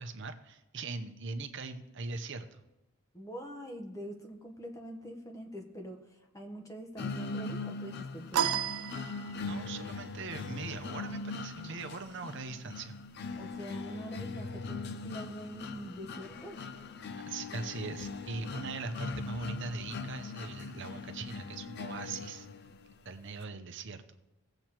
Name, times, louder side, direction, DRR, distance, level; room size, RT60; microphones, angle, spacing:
voice 1, 0.0-2.6 9.4-13.0 17.2-22.5 23.0-24.0, right 3 dB, 55° right, 7 dB, 0.8 m, -41 dB
voice 2, 3.1-8.6 13.4-16.6, equal, 15° left, 3 dB, 1.1 m, -44 dB
sound 1, 7.0-22.9, left 4 dB, 45° left, 0.5 m, -41 dB
sound 2, 8.3-9.7, right 9 dB, 85° right, 0.5 m, -32 dB
18.5 x 7.7 x 3.0 m, 0.98 s
head